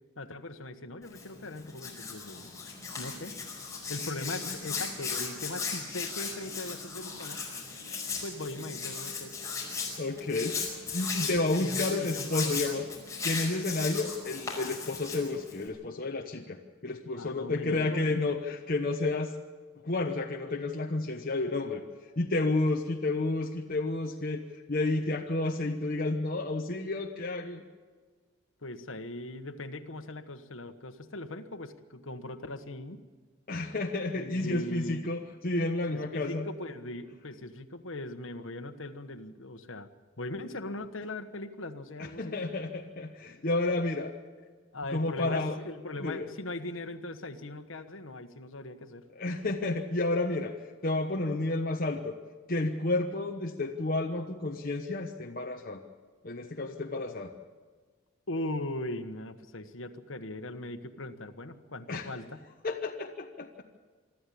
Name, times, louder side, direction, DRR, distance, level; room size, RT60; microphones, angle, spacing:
voice 1, 0.2-2.5 3.0-3.3 3.9-7.5 8.2-9.4 11.2-12.8 17.1-18.2 28.6-33.0 34.1-35.1 35.9-39.9 40.2-42.4 44.7-49.0 58.3-62.4, left 1 dB, 70° left, 7 dB, 1.4 m, -40 dB
Hands, 1.0-15.7, left 5 dB, 15° left, 5.1 m, -37 dB
voice 2, 10.0-10.7 10.9-12.9 13.2-19.3 19.8-21.8 22.2-24.4 24.7-27.6 33.5-36.5 42.0-44.1 44.9-45.6 46.0-46.3 49.2-50.5 50.8-52.1 52.5-55.8 56.2-57.3 61.9-62.1 62.6-63.6, left 2 dB, 45° left, 2 dB, 1.1 m, -31 dB
24.0 x 13.5 x 8.5 m, 1.5 s
head